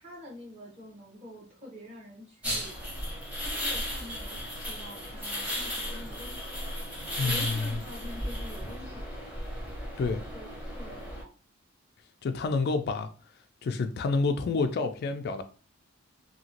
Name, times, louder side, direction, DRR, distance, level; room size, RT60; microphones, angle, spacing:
voice 1, 0.0-2.8 3.4-6.5 7.2-9.6 10.3-11.3, left 1 dB, 30° right, 1.1 m, -47 dB
sound 1, 2.4-11.2, equal, 5° right, 0.9 m, -35 dB
voice 2, 7.2-7.8 10.0-10.2 12.2-13.1 13.6-15.4, left 4 dB, 55° left, 0.3 m, -28 dB
2.9 x 2.8 x 2.8 m
head